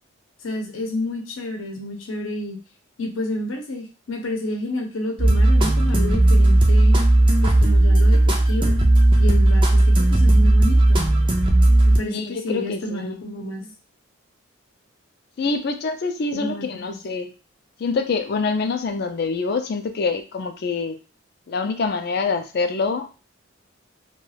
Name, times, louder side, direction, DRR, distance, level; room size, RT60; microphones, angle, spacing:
voice 1, 0.4-2.6 3.0-7.0 7.4-8.7 9.2-11.1 11.9-13.7 16.3-17.0, left 1 dB, 80° left, 2 dB, 0.7 m, -30 dB
sound 1, 5.2-12.0, right 1 dB, 25° right, 0.4 m, -15 dB
voice 2, 12.0-13.2 15.4-17.3 17.8-21.0 21.5-23.1, left 4 dB, 50° left, 7 dB, 0.4 m, -25 dB
2.3 x 2.2 x 3.2 m, 0.32 s
head